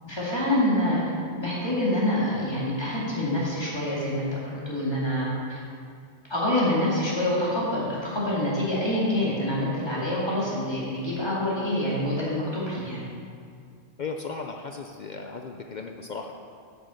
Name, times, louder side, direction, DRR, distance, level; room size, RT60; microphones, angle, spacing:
voice 1, 0.0-1.0 1.4-5.6 6.3-13.0, left 1 dB, 20° left, -6 dB, 2.4 m, -26 dB
voice 2, 14.0-16.3, left 4 dB, 60° left, 3 dB, 0.5 m, -36 dB
8.0 x 6.4 x 7.0 m, 2.3 s
omnidirectional pair, 1.3 m